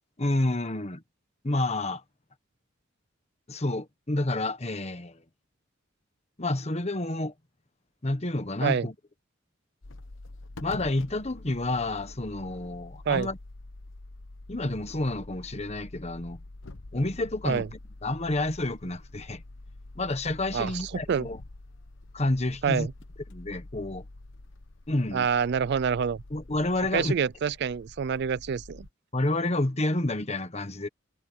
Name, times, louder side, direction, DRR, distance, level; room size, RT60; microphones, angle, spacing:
voice 1, 0.2-1.0 1.4-2.0 3.5-5.2 6.4-7.3 8.0-8.9 10.6-13.4 14.5-16.4 16.9-19.4 20.0-21.4 22.1-22.9 23.3-24.0 24.9-25.3 26.3-27.1 29.1-30.9, left 2 dB, 35° left, 1.4 m, -29 dB
sound 1, 9.8-28.9, left 2 dB, 70° left, 1.0 m, -46 dB
voice 2, 20.5-21.3 22.6-22.9 25.1-26.2 26.9-28.9, right 7 dB, 55° right, 0.4 m, -27 dB
head